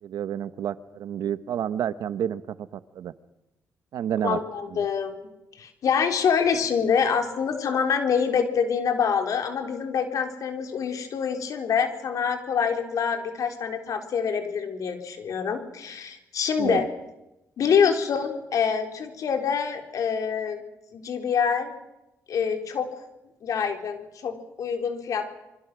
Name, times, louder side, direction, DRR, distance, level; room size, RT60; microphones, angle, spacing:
voice 1, 0.0-3.1 3.9-4.4 16.6-16.8, right 10 dB, 80° right, 13 dB, 1.1 m, -29 dB
voice 2, 4.2-16.9 17.6-20.6 20.9-21.8 22.3-23.0 23.4-25.2, left 6 dB, 70° left, 5 dB, 3.9 m, -26 dB
27.5 x 24.0 x 6.3 m, 0.94 s
cardioid pair, 80°, 6 cm